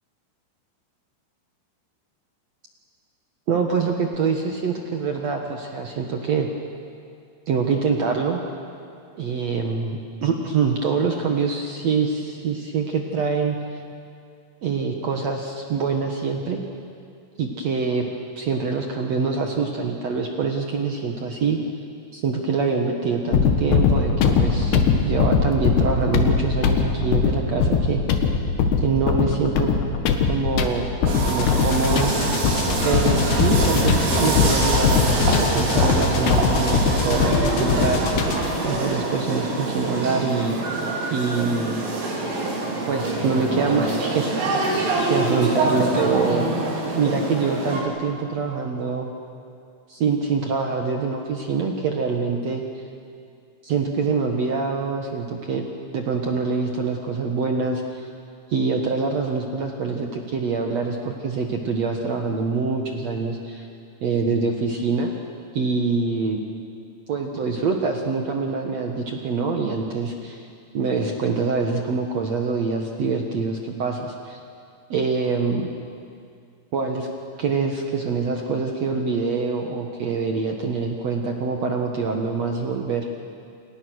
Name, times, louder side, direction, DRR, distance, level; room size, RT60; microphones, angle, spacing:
voice 1, 3.5-6.5 7.5-8.4 9.2-13.6 14.6-16.6 17.4-18.1 18.4-21.6 22.1-28.0 28.8-29.7 30.3-30.9 31.2-32.1 32.8-38.0 38.6-40.5 41.1-41.8 42.9-44.3 44.7-46.5 46.8-49.1 49.9-52.6 53.6-55.6 55.9-58.1 58.5-63.7 64.0-65.1 65.5-66.4 67.1-70.5 70.7-74.4 74.9-75.7 76.7-77.1 77.4-83.1, right 4 dB, 90° right, 2 dB, 1.4 m, -25 dB
sound 1, 23.3-38.6, left 5 dB, 65° left, 3.5 m, -21 dB
sound 2, 31.1-47.8, right 2 dB, 75° right, 6.5 m, -25 dB
29.0 x 28.5 x 6.4 m, 2.4 s
omnidirectional pair, 5.5 m